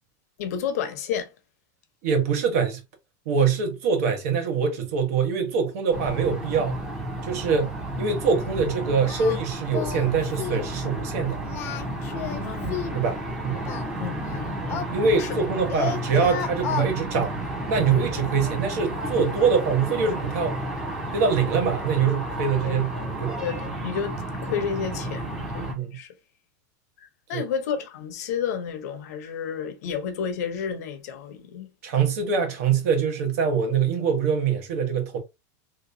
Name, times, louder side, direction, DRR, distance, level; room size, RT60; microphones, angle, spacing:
voice 1, 0.4-1.3 7.5-7.7 12.1-13.2 14.0-15.4 22.6-22.8 23.4-24.1 24.4-26.1 27.0-31.7, left 7 dB, 60° left, 0.8 m, -31 dB
voice 2, 2.0-2.8 3.2-6.8 7.2-7.7 8.0-11.4 12.9-13.7 14.9-17.4 17.7-20.6 21.1-22.9 23.2-23.4 25.7-26.0 27.3-27.4 31.8-35.2, right 6 dB, 55° right, 1.1 m, -24 dB
sound 1, 5.9-25.7, right 1 dB, 5° right, 0.8 m, -32 dB
Singing, 9.1-9.4 9.7-10.1 10.4-10.7 11.4-13.0 13.6-15.4 15.7-16.9, left 9 dB, 25° left, 0.3 m, -32 dB
3.3 x 2.9 x 2.6 m
supercardioid pair, 170°, 10 cm